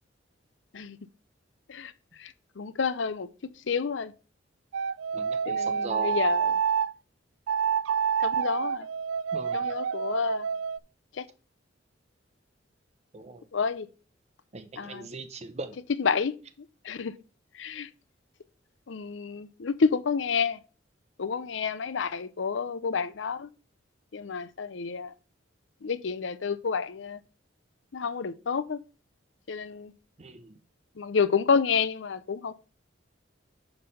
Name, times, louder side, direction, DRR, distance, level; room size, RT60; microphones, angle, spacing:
voice 1, 2.2-3.3 3.7-4.1 5.5-6.5 8.2-8.9 9.5-10.5 11.1-11.3 13.5-13.9 14.8-15.1 16.0-17.1 17.5-17.9 18.9-20.6 21.2-23.5 24.1-25.1 25.8-27.2 27.9-28.8 29.5-29.9 31.0-32.5, left 5 dB, 70° left, 0.6 m, -29 dB
sound 1, 4.7-6.9 7.5-10.8, right 7 dB, 80° right, 0.3 m, -28 dB
voice 2, 5.1-6.2 9.3-9.7 13.1-13.5 14.5-15.8 30.2-30.6, right 3 dB, 35° right, 0.7 m, -39 dB
9.8 x 3.4 x 5.5 m
head